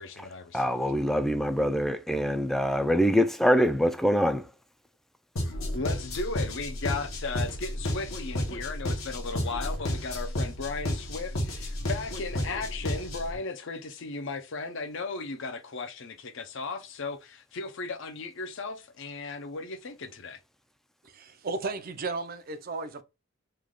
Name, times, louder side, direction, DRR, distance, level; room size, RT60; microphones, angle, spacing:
voice 1, 0.0-0.7 5.7-20.4, left 3 dB, 65° left, 0.6 m, -36 dB
voice 2, 0.5-4.4, equal, ahead, 0.4 m, -24 dB
sound 1, 5.4-13.4, left 1 dB, 80° left, 1.1 m, -32 dB
voice 3, 21.0-23.0, right 3 dB, 45° right, 0.6 m, -34 dB
3.3 x 2.3 x 3.6 m
head